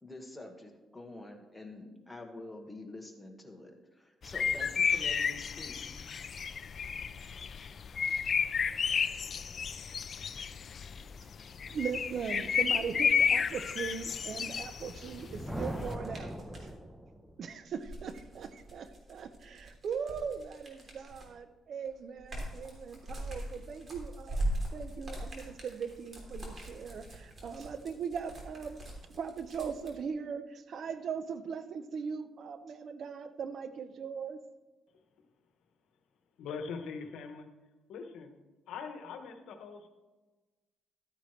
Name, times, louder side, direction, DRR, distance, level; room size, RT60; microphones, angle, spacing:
voice 1, 0.0-5.8, left 2 dB, 10° left, 2 dB, 1.7 m, -47 dB
sound 1, 4.2-15.9, left 6 dB, 50° left, 0.4 m, -32 dB
voice 2, 11.7-16.3 17.4-24.4 24.7-28.8 29.1-34.4, right 6 dB, 60° right, 11 dB, 0.7 m, -39 dB
sound 2, 13.9-16.7 17.7-21.4 21.9-29.9, right 1 dB, 40° right, 3.1 m, -41 dB
Thunder, 14.9-17.5, equal, 10° right, 0.9 m, -40 dB
voice 3, 36.4-37.5 37.9-38.4 38.7-39.9, left 5 dB, 80° left, 6 dB, 1.1 m, -42 dB
13.0 x 9.2 x 3.2 m, 1.2 s
cardioid pair, 90°, 0 cm